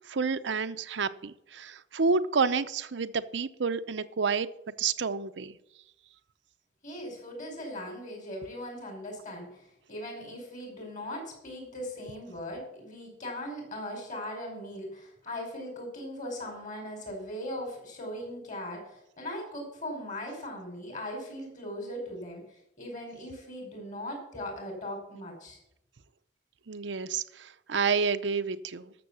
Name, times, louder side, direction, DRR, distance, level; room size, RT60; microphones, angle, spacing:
voice 1, 0.1-4.5 4.8-5.6 26.7-28.9, right 5 dB, 80° right, 10 dB, 0.7 m, -29 dB
voice 2, 6.8-25.6, left 1 dB, 45° left, 1 dB, 5.3 m, -39 dB
13.0 x 7.1 x 7.0 m, 0.80 s
head